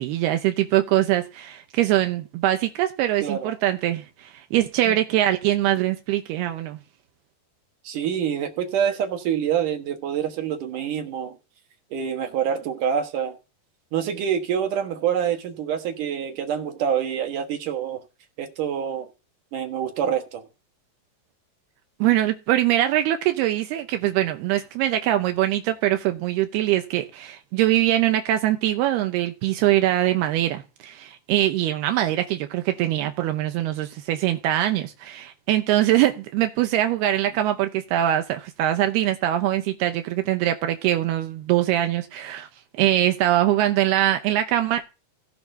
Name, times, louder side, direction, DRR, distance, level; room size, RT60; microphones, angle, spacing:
voice 1, 0.0-6.8 22.0-42.5 42.8-44.8, right 13 dB, 80° right, 2.8 m, -23 dB
voice 2, 3.2-3.5 4.8-5.0 7.8-11.4 11.9-13.4 13.9-18.0 18.4-19.1 19.5-20.5, right 8 dB, 60° right, 2.6 m, -26 dB
17.0 x 10.5 x 2.7 m
omnidirectional pair, 4.7 m